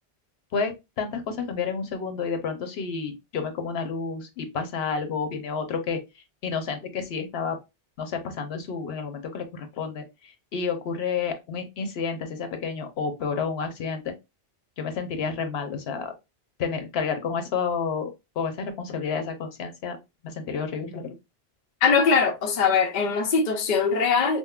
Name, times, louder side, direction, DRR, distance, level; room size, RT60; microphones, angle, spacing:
voice 1, 0.5-6.0 6.4-7.6 8.0-14.1 14.8-16.1 16.6-18.1 18.4-20.0 20.2-21.1, left 5 dB, 80° left, 1.0 m, -30 dB
voice 2, 21.8-24.4, left 5 dB, 55° left, 0.6 m, -21 dB
5.3 x 2.1 x 2.2 m
omnidirectional pair, 1.0 m